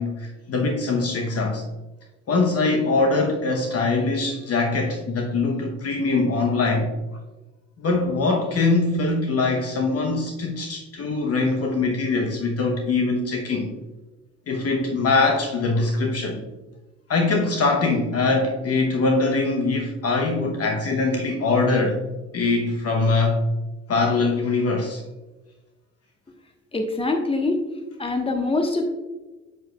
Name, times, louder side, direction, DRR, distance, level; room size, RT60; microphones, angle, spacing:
voice 1, 0.0-1.6 2.3-6.9 7.8-13.7 14.5-16.4 17.1-22.0 22.3-23.4 23.9-25.0, left 3 dB, 40° left, 2 dB, 1.0 m, -22 dB
voice 2, 26.7-27.6 28.0-28.9, left 2 dB, 15° left, 4 dB, 1.2 m, -24 dB
7.5 x 6.9 x 2.3 m, 1.1 s
hypercardioid pair, 60°, 37 cm